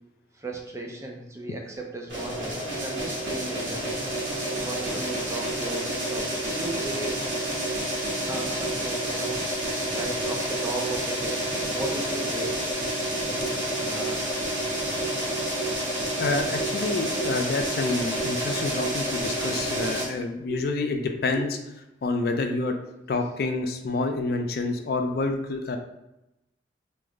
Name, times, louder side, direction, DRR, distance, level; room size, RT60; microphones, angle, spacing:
voice 1, 0.3-3.9 4.5-7.1 8.3-9.4 9.9-12.6 13.3-14.2 20.5-20.6, right 2 dB, 15° right, 1 dB, 0.4 m, -36 dB
sound 1, 2.1-20.1, right 1 dB, 70° right, 1.2 m, -29 dB
voice 2, 16.2-21.5 22.0-22.8 23.1-25.8, left 3 dB, 55° left, 5 dB, 0.3 m, -28 dB
3.2 x 2.0 x 3.6 m, 0.91 s
head